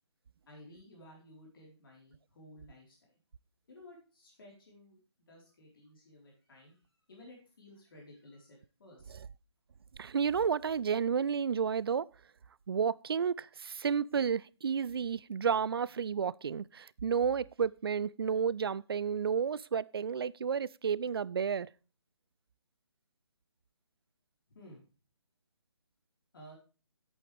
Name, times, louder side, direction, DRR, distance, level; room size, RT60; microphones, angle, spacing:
voice 1, 0.5-3.2 3.7-6.8 7.1-9.1 24.5-24.8 26.3-26.6, left 1 dB, 50° left, 4.1 m, -55 dB
voice 2, 10.0-12.1 12.7-21.7, right 6 dB, 55° right, 0.4 m, -31 dB
10.5 x 8.5 x 3.4 m
figure-of-eight pair, 150°, 15 cm